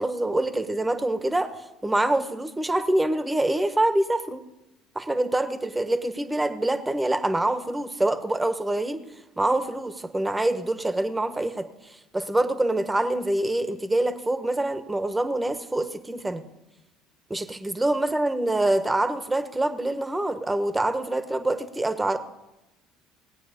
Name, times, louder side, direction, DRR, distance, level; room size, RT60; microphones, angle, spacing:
voice 1, 0.0-4.4 4.9-9.0 9.4-16.4 17.3-22.2, right 1 dB, 15° right, 10 dB, 1.4 m, -25 dB
19.5 x 8.6 x 5.3 m, 0.98 s
hypercardioid pair, 65°, 0 cm